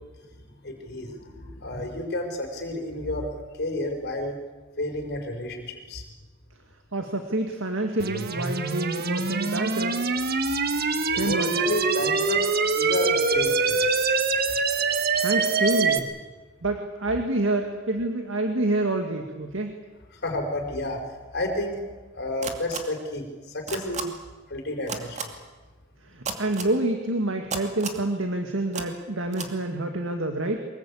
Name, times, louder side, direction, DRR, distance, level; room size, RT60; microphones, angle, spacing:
voice 1, 0.6-4.4 4.8-6.0 11.1-12.5 12.7-14.2 20.1-21.0 21.3-21.8 22.1-24.1 24.5-25.3, left 1 dB, 55° left, 3 dB, 5.0 m, -31 dB
voice 2, 6.9-9.9 11.2-11.6 15.2-16.1 16.6-19.7 26.1-30.6, right 2 dB, 70° right, 4 dB, 2.1 m, -27 dB
sound 1, 8.0-16.0, right 4 dB, 50° right, 1.6 m, -24 dB
sound 2, 22.4-22.8 23.7-24.0 24.9-25.2 26.2-26.7 27.5-28.0 28.7-28.8 29.3-29.5, right 5 dB, 35° right, 2.5 m, -31 dB
24.0 x 21.5 x 8.5 m, 1.3 s
head